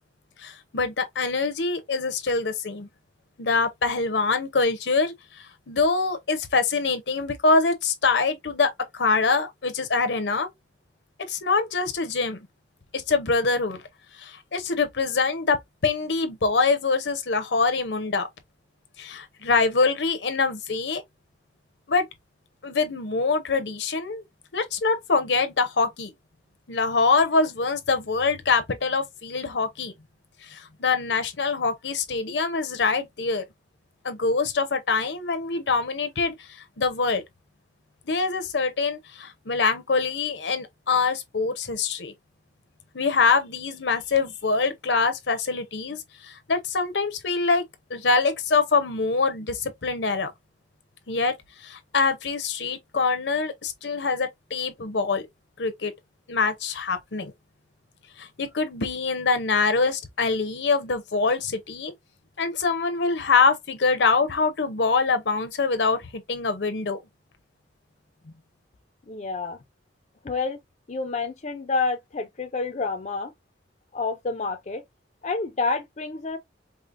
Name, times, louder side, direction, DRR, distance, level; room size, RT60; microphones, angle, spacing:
voice 1, 0.4-2.9 3.4-10.5 11.3-12.5 12.9-13.8 14.2-18.3 19.0-21.0 21.9-22.1 22.6-24.2 24.5-26.1 26.7-29.9 30.4-33.4 34.0-36.3 36.8-37.2 38.1-42.1 42.9-47.6 47.9-50.3 51.1-51.3 51.6-55.3 55.6-55.9 56.3-57.3 58.2-61.9 62.4-67.0, left 4 dB, 70° left, 0.8 m, -24 dB
voice 2, 69.1-69.6 70.2-70.6 70.9-73.3 73.9-74.8 75.2-76.4, left 4 dB, 40° left, 0.5 m, -28 dB
4.9 x 2.1 x 2.5 m
head